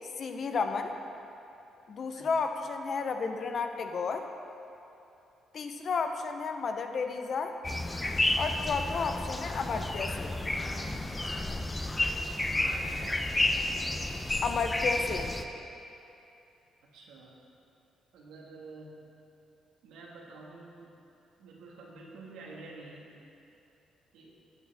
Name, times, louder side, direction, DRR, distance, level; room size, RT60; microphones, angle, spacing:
voice 1, 0.2-1.0 1.9-4.3 5.5-7.5 8.3-10.4 14.4-15.3, left 5 dB, 50° left, 6 dB, 0.7 m, -32 dB
sound 1, 7.6-15.4, left 2 dB, 15° left, 0.6 m, -31 dB
voice 2, 12.5-13.2 16.8-17.4 18.1-19.1 19.8-20.9 21.4-23.1 24.1-24.3, right 3 dB, 90° right, -3 dB, 1.6 m, -49 dB
12.0 x 8.6 x 3.5 m, 2.8 s
cardioid pair, 90°, 0 cm